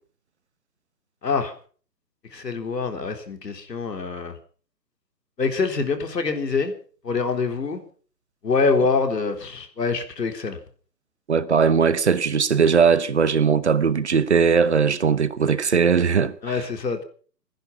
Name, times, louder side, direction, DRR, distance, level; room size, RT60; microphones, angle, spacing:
voice 1, 1.2-1.5 2.3-4.4 5.4-6.7 7.0-7.8 8.4-10.6 16.4-17.0, left 4 dB, 75° left, 3.8 m, -25 dB
voice 2, 11.3-16.3, right 6 dB, 40° right, 1.2 m, -19 dB
23.5 x 10.5 x 5.7 m
hypercardioid pair, 175°, 50 cm